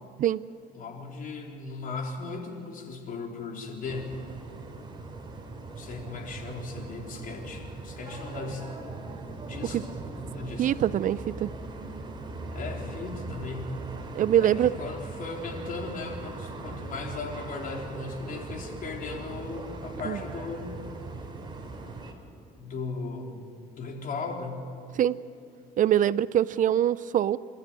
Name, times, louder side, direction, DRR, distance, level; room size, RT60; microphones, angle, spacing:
voice 1, 0.7-4.1 5.7-8.7 9.5-9.9 10.3-10.7 12.5-13.7 14.4-20.8 22.6-24.7, left 4 dB, 55° left, 2 dB, 3.9 m, -37 dB
sound 1, 3.8-22.1, right 3 dB, 25° right, 3.3 m, -40 dB
voice 2, 10.6-11.5 14.1-14.7 20.1-20.2 25.0-25.2 25.8-27.4, right 11 dB, 50° right, 18 dB, 0.5 m, -23 dB
29.0 x 13.0 x 9.7 m, 2.3 s
cardioid pair, 110°, 17 cm